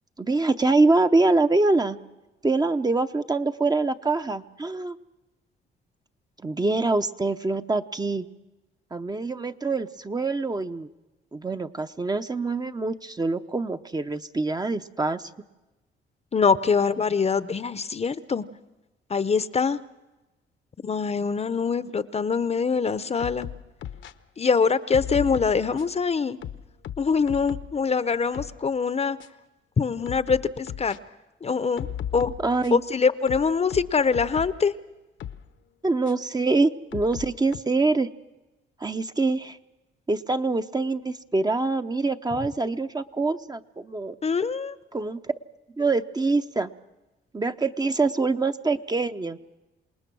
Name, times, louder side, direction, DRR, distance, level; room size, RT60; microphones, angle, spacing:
voice 1, 0.2-2.0 2.4-5.0 6.4-8.3 8.9-10.9 11.3-15.3 32.4-32.8 35.8-38.1 38.8-39.6 40.1-44.2 44.9-45.3 45.8-46.7 47.3-49.4, right 3 dB, 20° right, 9 dB, 0.7 m, -25 dB
voice 2, 16.3-18.4 19.1-19.8 20.8-23.5 24.4-26.4 27.0-29.2 29.8-31.0 31.4-31.9 32.1-32.3 32.7-34.7 44.2-44.8, left 5 dB, 30° left, 14 dB, 0.7 m, -24 dB
sound 1, 23.2-24.1 24.9-26.0 26.4-27.8 28.1-28.6 29.2-29.3 30.1-31.0 31.8-32.9 33.3-34.6 35.2-35.4 36.1-36.2 36.9-37.6, left 10 dB, 70° left, 1.0 m, -36 dB
27.5 x 19.5 x 6.2 m, 1.1 s
cardioid pair, 90°, 20 cm